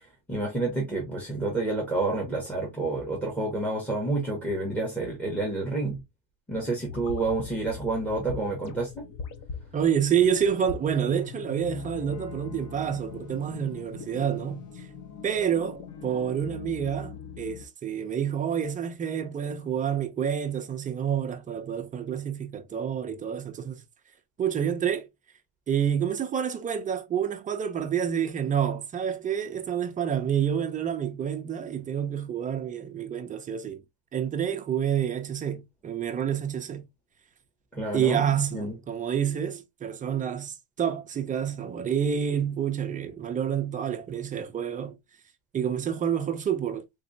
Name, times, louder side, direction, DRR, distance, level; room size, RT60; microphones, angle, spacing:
voice 1, 0.3-6.0 6.5-9.0 37.7-38.7, right 2 dB, 5° left, 0.9 m, -29 dB
sound 1, 6.9-17.7, left 6 dB, 40° left, 0.7 m, -41 dB
voice 2, 9.7-14.9 15.2-23.8 24.4-25.1 25.7-33.8 34.1-36.9 37.9-45.0 45.5-46.8, right 8 dB, 20° right, 0.3 m, -28 dB
3.8 x 3.0 x 2.6 m
cardioid pair, 150°, 44 cm